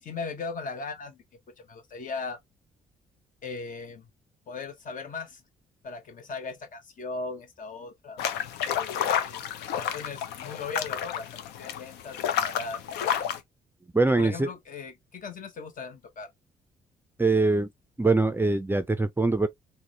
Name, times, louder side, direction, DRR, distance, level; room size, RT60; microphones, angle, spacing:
voice 1, 0.0-1.2 1.7-2.4 3.4-4.1 4.5-5.4 5.8-8.2 8.7-9.5 9.7-12.8 14.1-16.3, left 4 dB, 45° left, 0.9 m, -38 dB
sound 1, 8.2-13.4, left 9 dB, 65° left, 0.6 m, -30 dB
voice 2, 13.9-14.5 17.2-17.7 18.0-19.5, right 3 dB, 10° right, 0.5 m, -23 dB
3.6 x 2.1 x 2.9 m
figure-of-eight pair, 45°, 19 cm